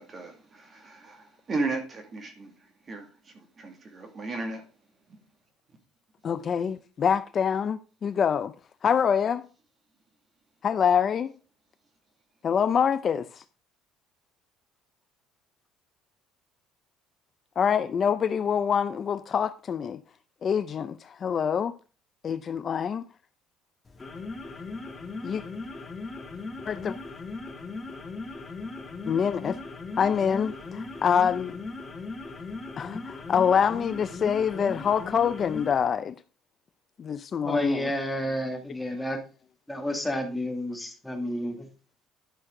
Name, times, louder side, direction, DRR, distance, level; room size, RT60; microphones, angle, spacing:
voice 1, 0.0-4.6, right 3 dB, 30° right, 2.1 m, -35 dB
voice 2, 6.2-8.5 8.8-9.4 10.6-11.3 12.4-13.4 17.6-20.0 20.4-21.7 22.2-23.1 25.2-25.4 26.7-27.0 29.1-29.6 30.0-31.6 32.8-36.2 37.0-37.9, left 7 dB, 35° left, 0.5 m, -25 dB
sound 1, 23.9-35.9, left 3 dB, 20° left, 1.8 m, -38 dB
voice 3, 37.4-39.2 39.7-41.7, left 1 dB, 5° left, 2.2 m, -30 dB
11.5 x 6.3 x 3.7 m
cardioid pair, 125°, 0 cm